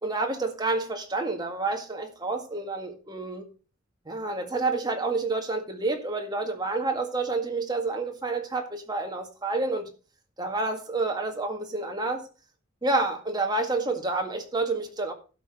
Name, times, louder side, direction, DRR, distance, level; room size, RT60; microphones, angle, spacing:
voice 1, 0.0-3.5 4.1-9.9 10.4-12.3 12.8-15.1, right 3 dB, 20° right, 1.9 m, -29 dB
12.0 x 6.0 x 5.9 m
head